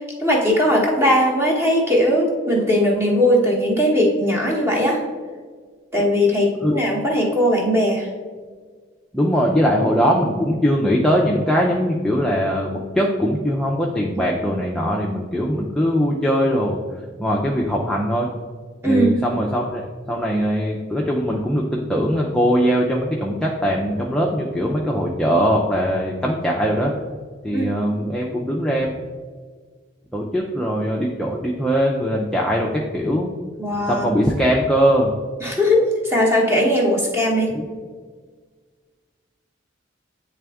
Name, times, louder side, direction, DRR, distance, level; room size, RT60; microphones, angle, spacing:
voice 1, 0.2-5.0 5.9-8.1 18.8-19.1 27.5-27.7 33.6-34.1 35.4-37.5, equal, 15° right, -1 dB, 1.0 m, -19 dB
voice 2, 9.1-16.8 17.2-18.3 18.8-26.9 27.4-28.9 30.1-33.3 33.9-35.1 37.5-37.7, equal, ahead, -3 dB, 0.4 m, -21 dB
8.8 x 3.4 x 3.4 m, 1.6 s
head